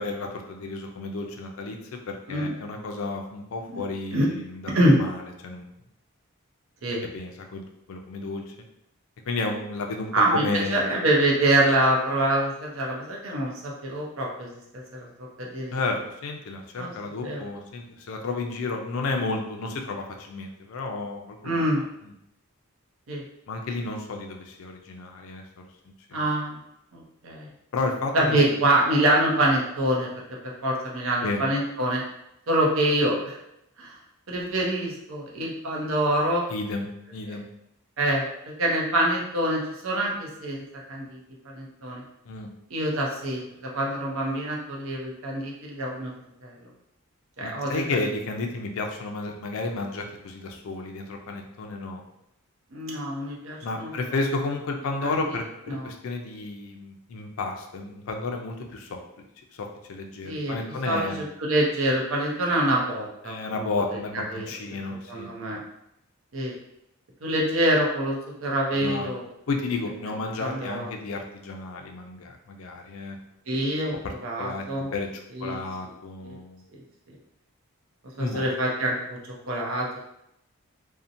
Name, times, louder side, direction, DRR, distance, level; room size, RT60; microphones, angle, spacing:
voice 1, 0.0-5.7 7.1-8.5 9.3-10.8 15.7-21.6 22.0-22.1 23.5-26.3 27.7-28.5 31.2-31.4 36.5-37.5 42.3-42.5 47.4-52.0 53.6-59.0 59.6-61.3 63.2-65.3 68.8-69.1 69.5-73.2 74.0-74.7 74.9-75.1 75.4-76.6 78.2-78.5, left 3 dB, 65° left, 3 dB, 0.4 m, -32 dB
voice 2, 10.1-10.4 10.7-14.5 14.9-15.1 15.4-15.8 16.8-16.9 17.2-17.4 21.4-21.9 23.1-23.2 26.1-26.6 26.9-27.5 28.1-30.1 30.4-32.0 32.5-33.4 33.8-34.0 34.3-36.4 37.3-37.4 38.0-38.3 38.6-40.6 40.9-41.2 41.4-42.0 42.7-46.1 46.4-46.6 47.4-47.8 52.7-53.9 55.0-55.2 55.7-55.9 60.2-60.6 60.8-63.7 64.1-64.5 65.1-65.6 66.3-66.5 67.2-69.2 70.4-70.9 73.5-74.9 75.3-75.6 76.2-76.4 76.7-76.8 78.2-79.2 79.5-80.0, right 1 dB, 65° right, -2 dB, 0.6 m, -25 dB
2.7 x 2.0 x 2.5 m, 0.82 s
head